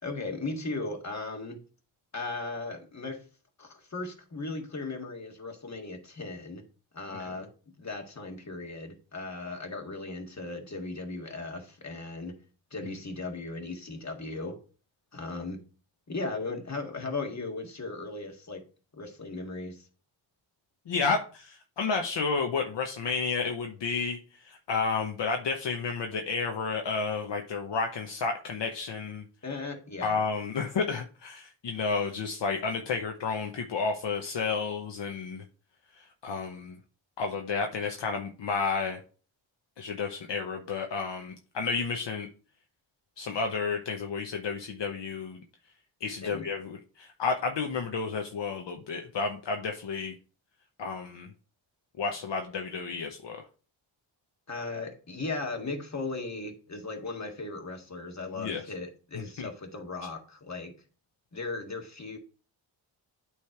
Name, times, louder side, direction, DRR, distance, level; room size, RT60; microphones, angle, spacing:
voice 1, 0.0-1.6 2.1-3.2 3.6-6.6 6.9-7.5 7.8-12.3 12.7-14.6 15.1-15.6 16.1-18.6 18.9-19.9 29.4-30.2 46.2-46.5 54.5-60.7 61.3-62.2, left 3 dB, 35° left, 1.7 m, -37 dB
voice 2, 20.9-29.2 30.0-35.4 36.0-36.8 37.2-39.0 39.8-42.3 43.2-45.4 46.0-50.1 50.8-51.3 52.0-53.4 58.4-58.6 59.1-59.5, left 4 dB, 60° left, 0.9 m, -31 dB
8.5 x 3.3 x 4.5 m
cardioid pair, 60°, 48 cm